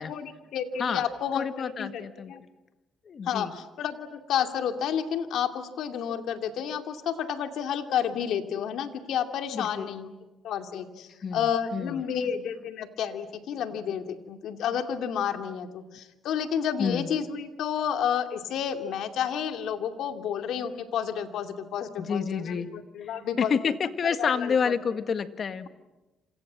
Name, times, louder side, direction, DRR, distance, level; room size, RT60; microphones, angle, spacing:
voice 1, 0.0-2.4 3.2-10.1 10.4-23.5 24.2-24.7, left 8 dB, 80° left, 6 dB, 2.5 m, -31 dB
voice 2, 1.3-2.3 3.1-3.5 9.5-9.9 11.2-12.1 16.8-17.1 22.0-22.7 23.0-23.1 23.4-25.7, left 6 dB, 50° left, 10 dB, 1.7 m, -29 dB
28.0 x 27.5 x 7.5 m, 1.1 s
cardioid pair, 90°, 0 cm